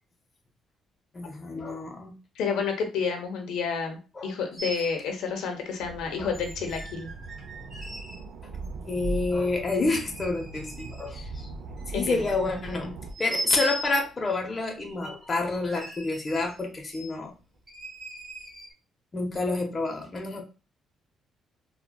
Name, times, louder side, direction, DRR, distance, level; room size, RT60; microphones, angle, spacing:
voice 1, 1.1-2.1 4.2-4.3 6.2-6.3 8.9-11.5 11.9-17.3 19.1-20.4, left 3 dB, 25° left, 1 dB, 0.6 m, -29 dB
voice 2, 2.4-7.1 11.9-12.2 15.7-15.8, left 5 dB, 90° left, 4 dB, 0.7 m, -30 dB
sound 1, 4.6-4.9 6.3-8.2 8.6-8.7 9.8-11.1 11.7-12.6 13.1-13.9 14.8-15.2 15.7-16.6 16.9-17.1 17.7-18.7, right 1 dB, 15° right, 1.5 m, -38 dB
sound 2, 5.8-13.1, right 3 dB, 65° right, 0.5 m, -39 dB
3.6 x 2.1 x 2.2 m, 0.33 s
cardioid pair, 150°, 0 cm